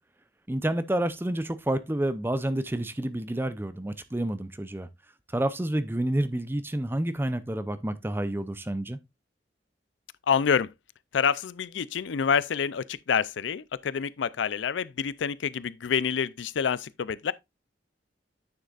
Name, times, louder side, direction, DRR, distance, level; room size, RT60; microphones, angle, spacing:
voice 1, 0.5-4.9 5.3-9.0, right 1 dB, 10° right, 0.5 m, -29 dB
voice 2, 10.3-10.7 11.1-17.3, left 7 dB, 90° left, 0.4 m, -27 dB
9.6 x 6.5 x 2.4 m
head